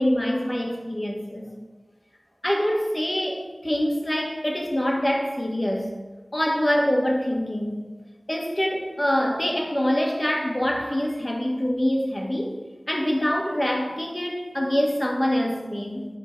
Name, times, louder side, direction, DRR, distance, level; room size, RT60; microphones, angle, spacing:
voice 1, 0.0-1.5 2.4-5.9 6.3-7.8 8.3-12.6 12.9-16.1, equal, 30° left, 1.4 m, -25 dB
10.0 x 3.8 x 5.3 m
wide cardioid pair, 50°, 0 cm